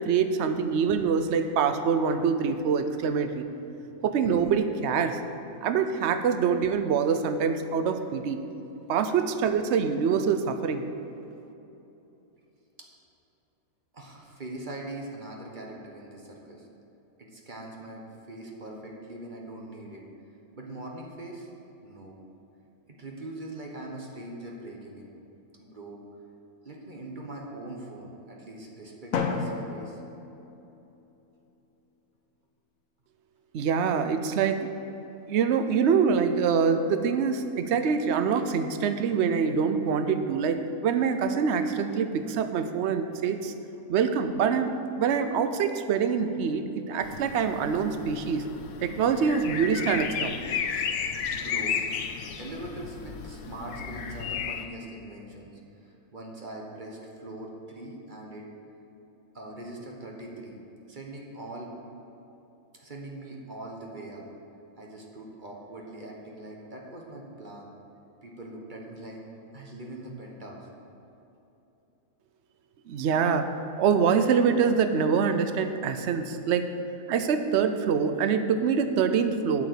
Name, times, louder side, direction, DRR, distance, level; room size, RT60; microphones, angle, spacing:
voice 1, 0.0-3.4 4.0-5.2 5.6-8.4 8.9-10.8 33.5-34.7 35.3-43.5 43.9-48.5 48.8-50.3 72.9-73.5 73.8-76.7 77.1-79.7, right 6 dB, 60° right, 8 dB, 0.9 m, -25 dB
voice 2, 13.9-16.7 17.2-20.0 20.5-21.5 21.8-22.1 23.0-25.1 25.6-26.0 26.6-30.0 51.3-51.8 52.4-55.5 55.8-58.5 59.3-60.6 60.9-61.7 62.7-64.2 64.8-67.7 68.2-69.2 69.5-70.7, right 2 dB, 35° right, -1 dB, 1.3 m, -41 dB
Drum, 29.1-31.1, left 5 dB, 70° left, 1.3 m, -32 dB
sound 1, 47.0-54.7, left 7 dB, 90° left, 1.2 m, -33 dB
8.5 x 6.9 x 8.2 m, 2.9 s
omnidirectional pair, 1.6 m